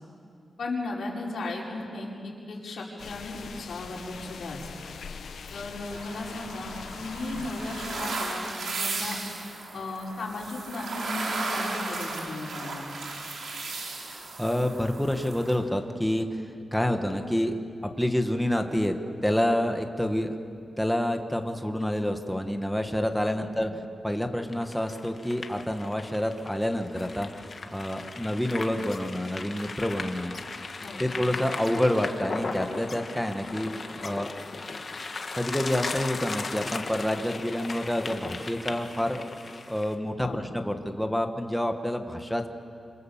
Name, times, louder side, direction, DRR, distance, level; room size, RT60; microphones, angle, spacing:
voice 1, 0.6-4.6 5.5-9.2 9.7-12.9 23.3-23.5 30.8-31.0 40.2-40.4, left 2 dB, 70° left, -3 dB, 5.4 m, -36 dB
sound 1, 3.0-8.1, left 6 dB, 90° left, 1.1 m, -42 dB
sound 2, 5.9-15.5, right 3 dB, 85° right, 4.4 m, -35 dB
voice 2, 14.1-17.6 17.8-18.9 19.2-20.4 20.8-23.7 24.0-30.4 31.0-33.7 34.0-34.3 35.3-39.2 39.7-42.5, left 1 dB, 5° left, 5 dB, 1.4 m, -28 dB
sound 3, 24.5-39.9, left 3 dB, 45° left, 1.6 m, -37 dB
26.5 x 26.5 x 7.4 m, 2.5 s
wide cardioid pair, 140°, 0 cm